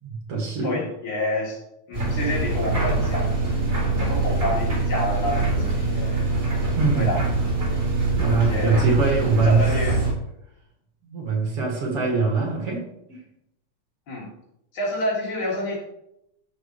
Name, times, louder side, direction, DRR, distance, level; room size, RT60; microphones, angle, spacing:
voice 1, 0.0-0.8 6.8-7.2 8.0-9.7 11.0-13.2, right 4 dB, 50° right, -1 dB, 2.9 m, -23 dB
voice 2, 0.6-1.6 1.9-3.3 4.0-6.3 6.9-7.2 8.4-8.8 9.4-10.0 14.1-14.3 14.7-15.8, left 1 dB, 70° left, -4 dB, 4.4 m, -28 dB
sound 1, 1.9-10.1, right 3 dB, 25° right, 3.6 m, -23 dB
14.5 x 6.6 x 3.1 m, 0.80 s
omnidirectional pair, 3.5 m